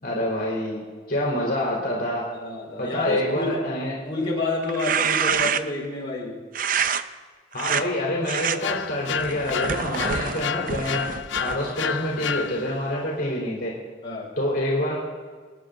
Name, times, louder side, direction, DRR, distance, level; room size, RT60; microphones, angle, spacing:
voice 1, 0.0-0.8 1.1-2.3 2.8-4.0 7.5-11.0 11.4-13.7 14.4-15.0, left 1 dB, 55° left, -4 dB, 3.8 m, -26 dB
voice 2, 2.3-3.5 4.0-6.4 14.0-14.3, left 3 dB, 30° left, -5 dB, 4.5 m, -29 dB
sound 1, 4.6-5.9 6.5-7.0 7.5-7.8 8.3-8.6 9.2-11.8, right 7 dB, 50° right, 0.5 m, -26 dB
sound 2, 8.6-13.0, left 8 dB, 80° left, 0.4 m, -30 dB
26.5 x 9.9 x 3.9 m, 1.5 s
head